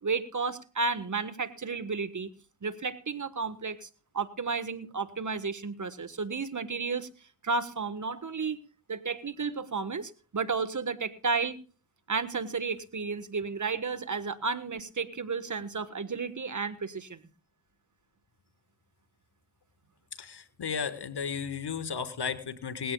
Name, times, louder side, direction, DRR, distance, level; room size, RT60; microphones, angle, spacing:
voice 1, 0.0-2.3 2.6-3.9 4.1-7.1 7.4-8.6 8.9-11.6 12.1-17.2, right 4 dB, 40° right, 12 dB, 1.5 m, -32 dB
voice 2, 20.2-22.9, left 6 dB, 55° left, 10 dB, 1.8 m, -34 dB
19.5 x 16.5 x 2.4 m, 0.36 s
supercardioid pair, 45°, 47 cm